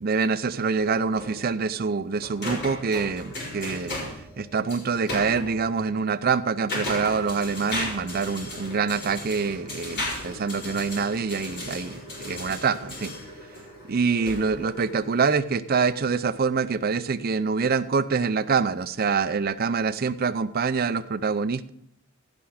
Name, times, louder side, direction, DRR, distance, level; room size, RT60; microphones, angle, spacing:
voice 1, 0.0-4.0 4.4-13.1 13.8-21.7, right 5 dB, 40° right, 12 dB, 0.5 m, -25 dB
sound 1, 0.8-5.5 6.3-15.2, left 1 dB, 50° left, 4.7 m, -36 dB
15.5 x 5.9 x 4.9 m, 0.74 s
head